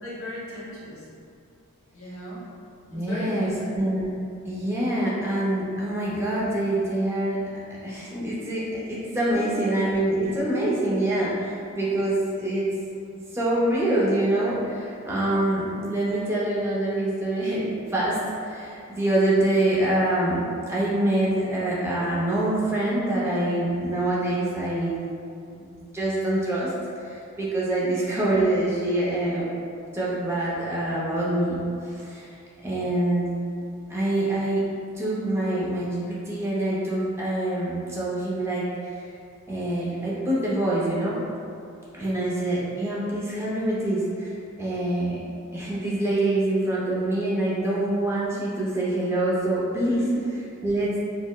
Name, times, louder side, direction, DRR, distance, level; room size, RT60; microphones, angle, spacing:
voice 1, 0.0-1.0 1.9-2.4 2.9-3.7 9.3-9.8 27.8-28.0 49.9-50.2, left 1 dB, 60° left, -8 dB, 1.0 m, -37 dB
voice 2, 2.9-4.1 4.5-7.4 7.7-12.7 13.3-20.4 20.7-25.0 25.5-26.7 27.0-29.5 29.9-32.3 32.6-33.3 33.9-34.7 34.9-39.1 39.5-41.2 41.9-45.2 45.5-50.1 50.6-51.0, right 1 dB, 10° right, -7 dB, 0.5 m, -25 dB
4.1 x 2.0 x 2.2 m, 2.5 s
head